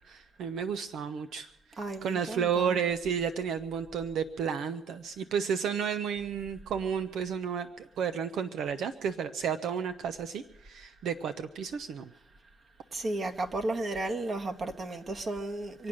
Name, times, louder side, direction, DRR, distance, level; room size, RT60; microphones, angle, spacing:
voice 1, 0.1-1.5 2.0-12.1, right 7 dB, 75° right, 0.6 m, -32 dB
voice 2, 1.8-2.8 12.9-15.9, right 2 dB, 45° right, 1.5 m, -34 dB
25.0 x 8.7 x 6.3 m
cardioid pair, 75°, 0 cm